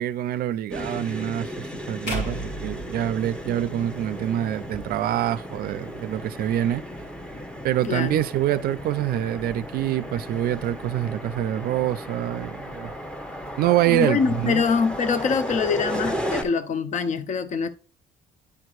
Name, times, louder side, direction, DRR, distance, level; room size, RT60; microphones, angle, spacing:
voice 1, 0.0-6.8 7.6-12.9 13.6-14.6, right 12 dB, 65° right, 0.4 m, -25 dB
sound 1, 0.7-16.4, equal, 5° left, 0.9 m, -35 dB
sound 2, 2.1-4.3, equal, 75° left, 1.9 m, -34 dB
voice 2, 7.8-8.2 13.9-17.7, left 5 dB, 45° left, 0.7 m, -24 dB
9.9 x 4.6 x 2.4 m
cardioid pair, 110°, 17 cm